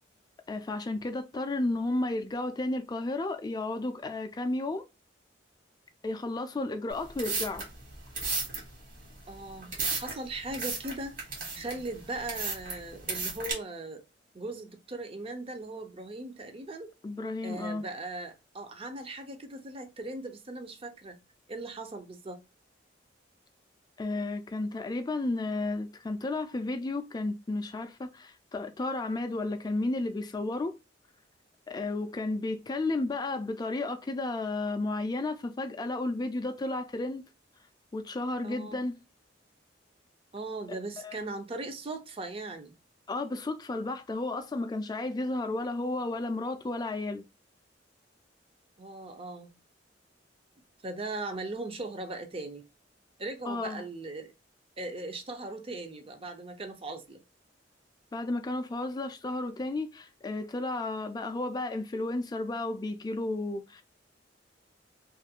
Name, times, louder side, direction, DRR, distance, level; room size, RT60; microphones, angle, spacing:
voice 1, 0.5-4.9 6.0-7.7 17.0-17.8 24.0-30.8 31.7-37.2 37.9-39.0 40.7-40.8 41.0-41.2 43.1-47.2 53.5-53.8 58.1-63.8, left 2 dB, 20° left, 0.3 m, -33 dB
sound 1, 6.9-13.5, right 4 dB, 50° right, 1.3 m, -35 dB
voice 2, 9.3-11.1 11.5-14.0 14.3-16.9 17.4-21.2 21.5-22.4 38.4-38.8 40.3-42.7 48.8-49.5 50.8-52.6 53.2-54.3 54.8-57.2, right 2 dB, 30° right, 0.5 m, -39 dB
2.6 x 2.4 x 2.7 m
head